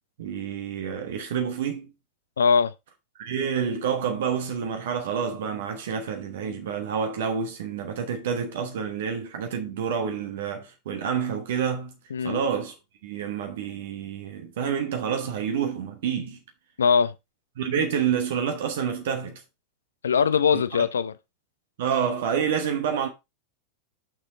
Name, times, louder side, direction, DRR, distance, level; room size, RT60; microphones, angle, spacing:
voice 1, 0.2-1.9 3.2-11.9 12.2-12.7 13.0-16.4 17.6-19.4 20.5-20.8 21.8-23.1, right 7 dB, 55° right, 1.1 m, -28 dB
voice 2, 2.4-2.7 12.1-12.4 16.8-17.1 20.0-21.1, left 6 dB, 70° left, 0.5 m, -21 dB
6.4 x 6.2 x 3.6 m
figure-of-eight pair, 90°, 0 cm